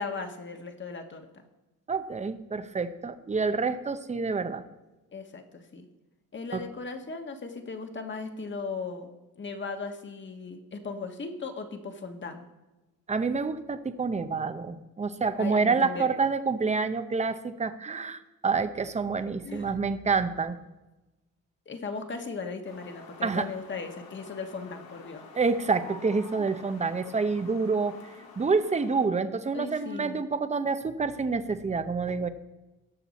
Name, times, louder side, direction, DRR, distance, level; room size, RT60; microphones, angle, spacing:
voice 1, 0.0-1.4 5.1-5.8 6.3-12.4 15.4-16.1 19.4-19.7 21.6-25.2 29.5-30.3, left 4 dB, 35° left, 5 dB, 1.4 m, -37 dB
voice 2, 1.9-4.6 6.5-6.6 13.1-20.6 23.2-23.5 25.3-28.0 28.4-32.3, right 4 dB, 20° right, 11 dB, 0.7 m, -28 dB
sound 1, 22.6-29.1, left 4 dB, 80° left, 2.0 m, -48 dB
18.0 x 6.7 x 4.2 m, 1.1 s
cardioid pair, 100°, 35 cm